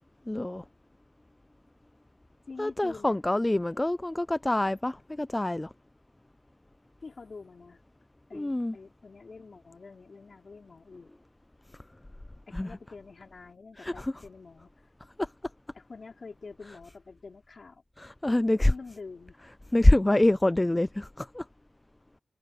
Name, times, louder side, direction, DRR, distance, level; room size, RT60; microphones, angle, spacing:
voice 1, 0.3-0.6 2.6-5.7 8.3-8.8 12.5-12.7 13.8-14.1 15.2-15.3 18.0-18.7 19.7-21.5, left 1 dB, 15° left, 0.4 m, -25 dB
voice 2, 2.5-3.2 7.0-7.8 8.3-11.1 12.5-14.7 15.7-17.8 18.6-19.4, left 4 dB, 50° left, 5.3 m, -46 dB
cardioid pair, 75°, 0 cm